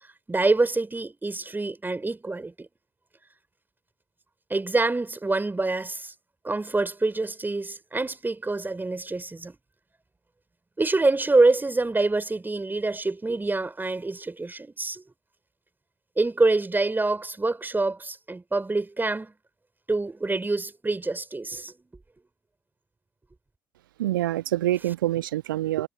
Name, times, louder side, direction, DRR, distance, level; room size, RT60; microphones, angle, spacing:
voice 1, 0.3-2.7 4.5-6.1 6.4-9.6 10.8-15.0 16.2-19.3 19.9-21.7, right 3 dB, 15° right, 4.6 m, -26 dB
voice 2, 24.0-25.9, right 14 dB, 75° right, 0.8 m, -26 dB
figure-of-eight pair, 50°, 11 cm